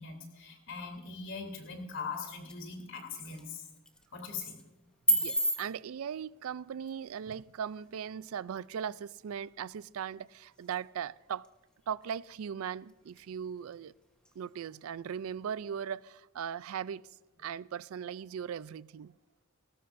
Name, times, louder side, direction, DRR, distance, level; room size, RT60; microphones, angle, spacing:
voice 1, 0.0-3.6 4.1-4.6, left 5 dB, 60° left, 3.1 m, -41 dB
sound 1, 1.6-15.6, right 1 dB, 5° left, 1.1 m, -39 dB
voice 2, 5.1-11.5 11.9-13.9 14.4-17.1 17.4-19.1, right 8 dB, 70° right, 0.4 m, -39 dB
19.0 x 18.5 x 2.6 m
head